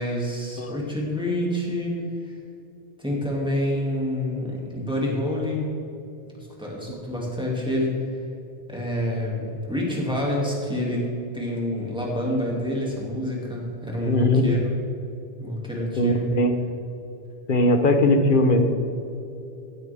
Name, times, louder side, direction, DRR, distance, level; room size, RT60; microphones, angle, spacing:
voice 1, 0.0-2.3 3.0-5.7 6.4-8.0 8.7-14.6 15.4-16.3, left 1 dB, 5° right, -4 dB, 2.4 m, -27 dB
voice 2, 14.1-14.5 16.0-16.5 17.5-18.7, left 1 dB, 55° left, 6 dB, 1.2 m, -19 dB
15.5 x 8.8 x 3.6 m, 2.8 s
omnidirectional pair, 1.0 m